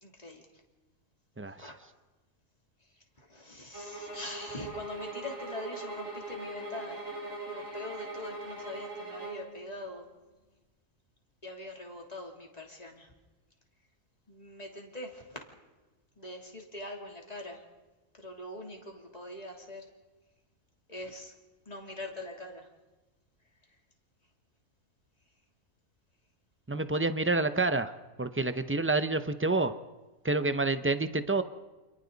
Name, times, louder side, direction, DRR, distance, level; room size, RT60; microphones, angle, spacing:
voice 1, 0.0-0.4 1.6-1.8 2.8-10.0 11.4-13.1 14.3-15.4 16.2-17.7 18.1-19.9 20.9-21.3 21.6-22.7 23.6-23.8, left 2 dB, 25° left, 0 dB, 3.2 m, -43 dB
voice 2, 1.4-1.7 26.7-27.9 28.2-29.7 30.2-31.4, right 3 dB, 15° right, 10 dB, 0.6 m, -28 dB
sound 1, 3.7-9.5, right 2 dB, 50° right, 6.8 m, -40 dB
30.0 x 27.5 x 4.1 m, 1.2 s
omnidirectional pair, 1.5 m